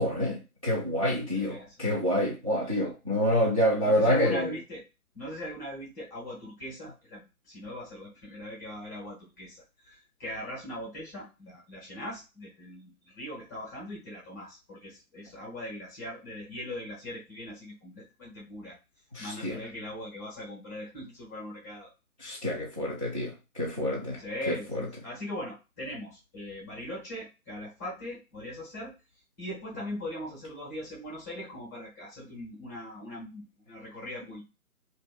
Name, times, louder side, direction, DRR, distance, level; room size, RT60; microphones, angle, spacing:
voice 1, 0.0-4.5 19.1-19.6 22.2-24.8, equal, 25° right, 0.5 m, -27 dB
voice 2, 1.3-1.7 2.6-2.7 3.8-4.8 5.1-18.8 19.2-21.9 24.2-28.9 29.4-34.4, left 1 dB, 10° left, 0.7 m, -40 dB
2.5 x 2.5 x 3.7 m
figure-of-eight pair, 140°, 44 cm